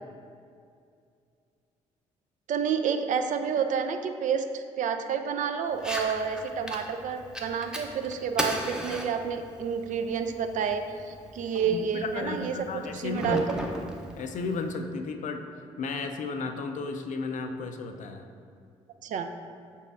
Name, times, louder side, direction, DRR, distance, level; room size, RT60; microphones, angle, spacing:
voice 1, 2.5-12.7 12.9-13.6 19.0-19.3, right 6 dB, 50° right, 7 dB, 0.4 m, -29 dB
Fire, 5.7-14.7, equal, 5° right, 0.6 m, -38 dB
voice 2, 11.5-13.4 13.8-13.9 14.2-15.4 15.8-18.3, left 4 dB, 50° left, 6 dB, 0.4 m, -34 dB
5.3 x 4.1 x 2.4 m, 2.4 s
hypercardioid pair, 50°, 16 cm